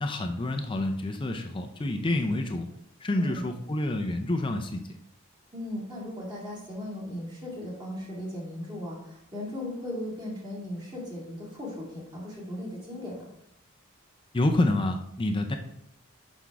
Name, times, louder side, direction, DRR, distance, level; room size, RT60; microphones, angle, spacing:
voice 1, 0.0-2.7 3.0-4.8 14.3-15.6, left 1 dB, 25° left, 4 dB, 0.5 m, -28 dB
voice 2, 5.5-13.3, left 1 dB, 20° right, -5 dB, 2.1 m, -37 dB
6.1 x 5.8 x 3.4 m, 0.75 s
head